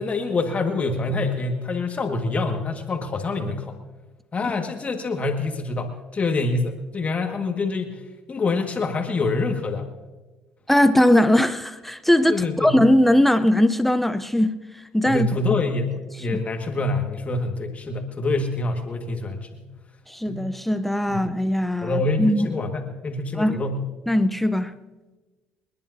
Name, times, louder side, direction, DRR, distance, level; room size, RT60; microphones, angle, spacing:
voice 1, 0.0-3.8 4.3-8.0 8.3-9.9 12.3-12.8 15.0-15.9 16.2-19.6 20.2-20.4 21.1-21.3 21.8-23.8, left 3 dB, 35° left, 1.7 m, -26 dB
voice 2, 10.7-14.6 14.9-15.3 16.3-16.4 20.1-22.5 23.3-23.6 24.1-24.7, left 1 dB, 5° left, 0.7 m, -20 dB
29.5 x 10.5 x 2.7 m
supercardioid pair, 75°, 4 cm